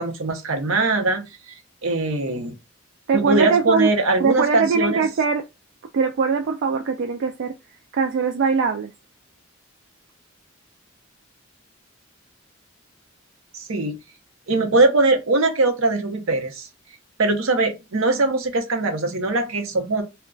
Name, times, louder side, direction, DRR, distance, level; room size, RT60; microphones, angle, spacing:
voice 1, 0.0-1.5 1.8-2.5 3.1-5.0 13.5-14.0 14.5-16.7 17.2-20.0, right 2 dB, 80° right, 0.7 m, -21 dB
voice 2, 3.1-3.9 4.2-5.4 5.9-7.5 7.9-8.9, right 5 dB, 60° right, 0.3 m, -21 dB
2.3 x 2.2 x 3.7 m
head